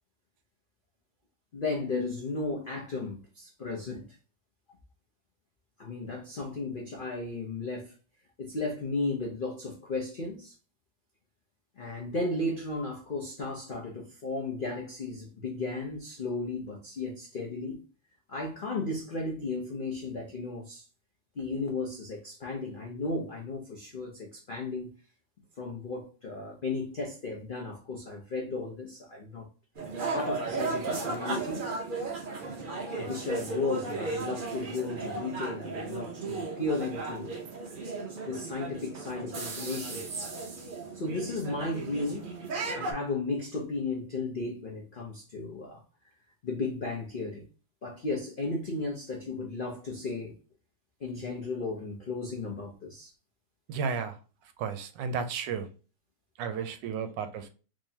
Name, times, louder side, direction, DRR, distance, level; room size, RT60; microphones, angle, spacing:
voice 1, 1.5-4.1 5.8-7.9 8.4-10.5 11.8-17.8 18.3-20.8 21.4-24.9 25.6-29.5 30.1-31.7 32.9-37.4 38.3-40.0 40.9-42.3 42.7-45.8 46.4-47.4 47.8-50.3 51.0-53.1, left 3 dB, 85° left, 0.4 m, -34 dB
sound 1, 29.8-42.9, right 3 dB, 50° right, 0.6 m, -35 dB
voice 2, 53.7-54.2 54.6-55.7 56.4-57.5, right 6 dB, 80° right, 1.3 m, -33 dB
3.7 x 3.1 x 2.7 m
omnidirectional pair, 1.9 m